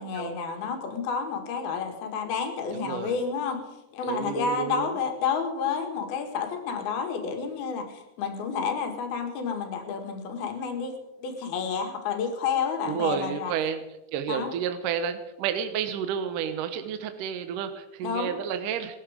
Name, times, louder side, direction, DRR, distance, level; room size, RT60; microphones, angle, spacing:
voice 1, 0.0-3.6 3.9-13.5 14.3-14.5 18.0-18.4, left 6 dB, 70° left, 4 dB, 3.7 m, -30 dB
voice 2, 2.7-3.2 4.0-4.9 12.9-13.8 14.1-19.0, right 8 dB, 70° right, 9 dB, 2.2 m, -30 dB
19.5 x 14.0 x 5.0 m, 0.97 s
omnidirectional pair, 4.6 m